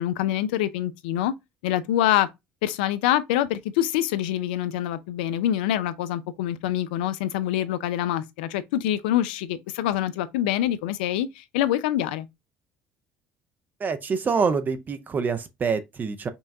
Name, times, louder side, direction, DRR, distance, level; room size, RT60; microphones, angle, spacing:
voice 1, 0.0-1.3 1.6-2.3 2.6-12.3, left 12 dB, 90° left, 0.4 m, -25 dB
voice 2, 13.8-16.3, right 5 dB, 35° right, 0.6 m, -26 dB
5.4 x 2.3 x 2.6 m
supercardioid pair, 75°, 5 cm